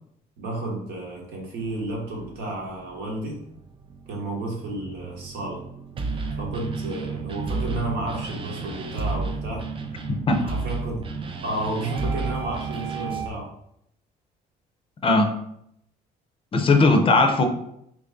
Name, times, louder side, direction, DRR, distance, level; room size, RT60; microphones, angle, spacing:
voice 1, 0.4-3.4 4.1-5.6 6.4-9.7 10.3-11.0 11.4-13.5, right 1 dB, 80° right, -2 dB, 1.1 m, -32 dB
sound 1, 1.6-13.3, right 4 dB, 30° right, 0.4 m, -32 dB
voice 2, 10.1-10.4 15.0-15.3 16.5-17.5, left 3 dB, 30° left, 6 dB, 0.5 m, -18 dB
3.0 x 2.6 x 3.5 m, 0.74 s
cardioid pair, 110°, 17 cm